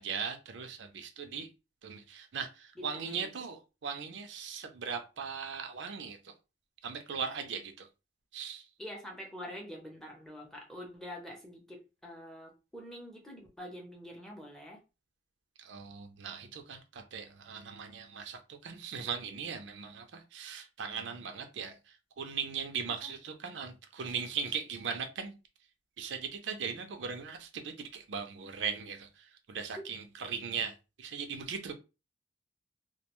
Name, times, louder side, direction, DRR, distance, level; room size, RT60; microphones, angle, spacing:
voice 1, 0.0-1.5 1.8-6.3 6.8-7.9 8.3-8.7 15.6-25.4 26.0-31.7, right 6 dB, 80° right, 0.5 m, -39 dB
voice 2, 2.8-3.3 8.8-14.8 23.0-23.1, equal, 5° left, 0.6 m, -46 dB
2.4 x 2.2 x 2.9 m
head